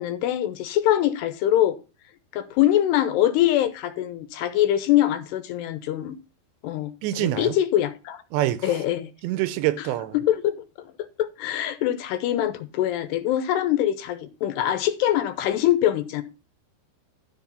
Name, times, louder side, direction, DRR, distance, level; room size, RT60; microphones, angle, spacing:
voice 1, 0.0-1.8 2.3-6.2 6.6-8.2 8.6-9.1 9.8-9.9 10.1-10.6 11.2-16.2, left 12 dB, 85° left, 2.8 m, -23 dB
voice 2, 7.0-7.5 8.3-8.7 9.2-10.2, right 14 dB, 90° right, 2.9 m, -25 dB
13.0 x 5.0 x 5.3 m
omnidirectional pair, 5.0 m